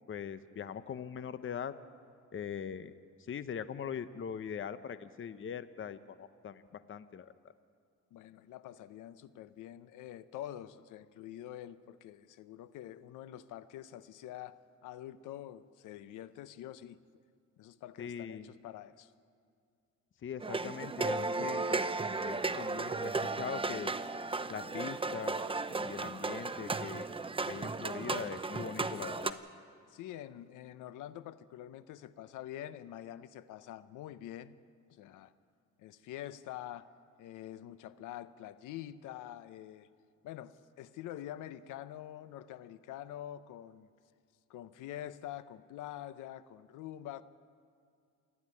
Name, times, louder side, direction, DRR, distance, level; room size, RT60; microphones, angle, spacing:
voice 1, 0.1-1.7 2.3-2.9 3.3-7.3 18.0-18.5 20.2-22.0 22.2-23.9 24.5-25.4 25.7-27.1 27.5-29.4, left 8 dB, 40° left, 13 dB, 0.8 m, -41 dB
voice 2, 8.1-17.0 17.6-19.1 29.9-35.3 35.8-36.9 37.2-39.9 40.2-43.9 44.5-47.2, left 12 dB, 90° left, 14 dB, 0.8 m, -46 dB
sound 1, 20.4-29.3, right 3 dB, 20° right, 0.8 m, -35 dB
27.5 x 9.8 x 9.7 m, 2.3 s
cardioid pair, 90°, 30 cm